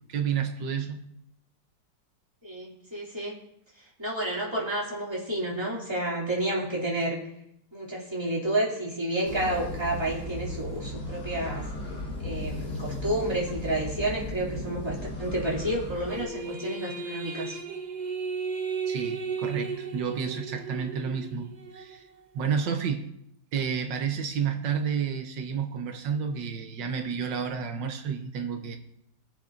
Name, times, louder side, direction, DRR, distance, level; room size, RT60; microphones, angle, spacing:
voice 1, 0.1-1.0 18.9-22.1 22.3-23.0 23.5-28.8, right 6 dB, 85° right, 5 dB, 1.6 m, -30 dB
voice 2, 2.4-3.3 4.0-7.2 7.7-11.7 12.2-17.6, right 1 dB, 15° right, -5 dB, 2.7 m, -30 dB
sound 1, 9.2-16.2, left 1 dB, 65° left, 2.2 m, -36 dB
sound 2, 16.1-21.9, right 5 dB, 50° right, 0.5 m, -35 dB
21.0 x 7.4 x 2.6 m, 0.75 s
omnidirectional pair, 1.9 m